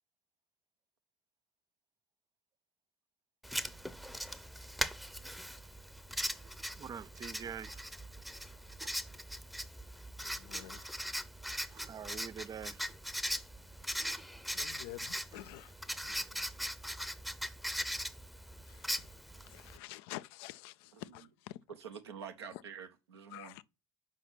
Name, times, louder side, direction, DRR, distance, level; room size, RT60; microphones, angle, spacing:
Writing, 3.4-19.8, equal, ahead, 0.7 m, -40 dB
voice 1, 6.8-7.8 10.5-10.7 11.7-12.8 13.9-14.2, right 8 dB, 30° right, 0.3 m, -45 dB
voice 2, 10.2-11.1 11.6-12.3 14.2-16.4 18.5-21.6 22.5-22.6 23.3-23.6, left 16 dB, 70° left, 0.4 m, -50 dB
voice 3, 21.8-23.6, right 7 dB, 85° right, 0.8 m, -47 dB
5.8 x 4.9 x 5.8 m
hypercardioid pair, 60°, 13 cm